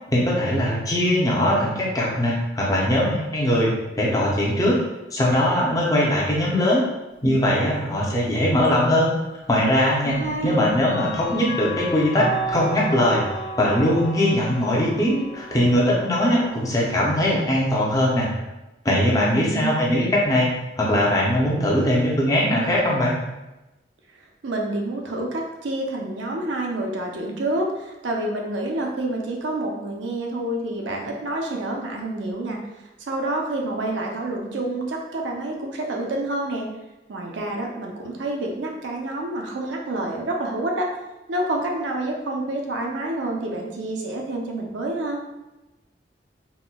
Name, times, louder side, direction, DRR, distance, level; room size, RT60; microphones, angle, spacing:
voice 1, 0.1-3.7 4.0-4.8 5.1-6.8 7.2-9.1 9.5-18.3 18.8-20.5 20.8-23.1, left 1 dB, 20° left, -4 dB, 0.5 m, -21 dB
Clock, 8.6-8.7 10.0-16.8, right 2 dB, 70° left, 1.0 m, -33 dB
voice 2, 10.0-10.6 19.1-19.7 20.0-20.2 24.4-32.6 33.0-36.7 37.1-40.9 41.3-45.2, right 1 dB, 85° right, 0 dB, 0.6 m, -28 dB
4.1 x 2.1 x 2.2 m, 1.0 s
head